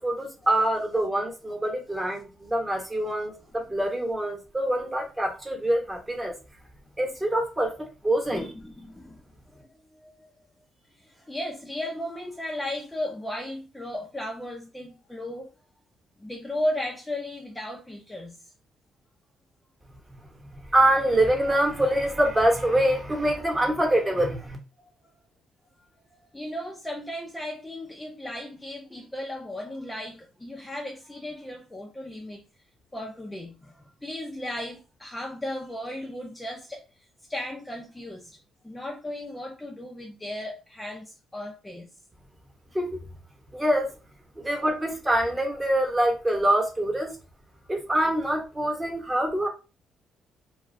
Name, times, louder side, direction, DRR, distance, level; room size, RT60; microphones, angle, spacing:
voice 1, 0.0-6.3 7.0-8.5 20.6-24.6 42.7-43.0 43.5-43.9 44.4-47.1 47.7-49.5, right 1 dB, 15° right, 1.0 m, -25 dB
voice 2, 8.3-9.2 9.5-10.3 11.0-15.5 16.2-18.4 24.8-24.9 26.3-32.4 32.9-36.8 37.3-38.4 38.6-41.9 44.4-44.6, left 1 dB, 10° left, 0.5 m, -35 dB
2.4 x 2.3 x 3.1 m
cardioid pair, 90°, 0 cm